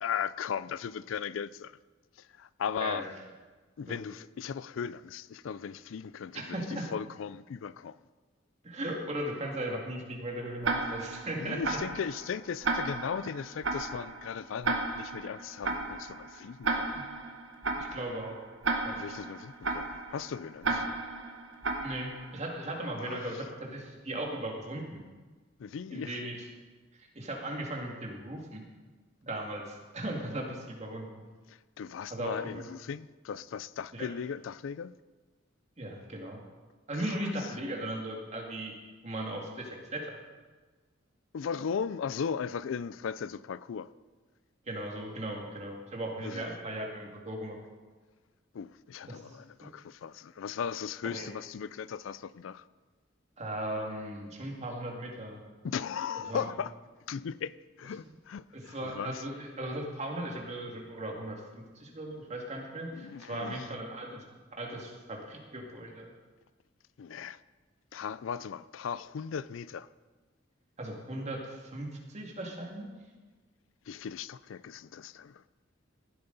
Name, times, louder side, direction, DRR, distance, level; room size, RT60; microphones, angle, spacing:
voice 1, 0.0-1.8 2.2-3.1 3.8-8.0 11.4-17.0 18.9-20.9 23.0-23.4 25.6-26.2 31.5-35.0 36.9-37.3 41.3-43.9 46.2-46.5 48.5-52.7 55.6-56.7 57.1-59.2 62.9-63.7 67.0-67.4 67.9-69.9 73.9-75.4, left 7 dB, 80° left, 0.4 m, -37 dB
voice 2, 6.3-6.9 8.6-11.8 16.9-17.0 17.8-18.4 18.8-19.0 20.7-20.8 21.8-25.1 25.9-26.4 27.0-28.6 29.2-31.1 32.1-32.6 33.9-34.1 35.8-36.4 36.9-38.7 39.0-40.2 44.7-47.6 49.1-49.4 51.0-51.3 53.4-55.4 56.3-56.5 58.5-64.2 64.6-66.1 70.8-72.9, right 1 dB, 35° right, 2.2 m, -37 dB
Tick-tock, 10.6-22.5, right 3 dB, 70° right, 1.2 m, -34 dB
15.5 x 11.5 x 4.0 m
head